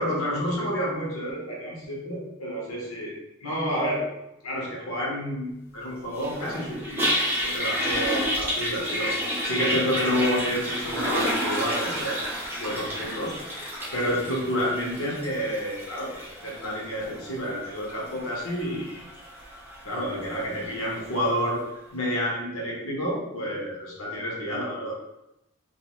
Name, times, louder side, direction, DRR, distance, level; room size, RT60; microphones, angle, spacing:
voice 1, 0.0-3.2 3.4-4.1 4.4-9.1 9.4-12.2 12.6-13.4 13.9-16.1 16.4-19.1 19.8-21.6 21.9-24.9, equal, 85° left, -3 dB, 1.0 m, -29 dB
Toilet flush, 6.2-21.4, equal, 10° right, 0.6 m, -31 dB
3.0 x 2.5 x 2.4 m, 0.87 s
head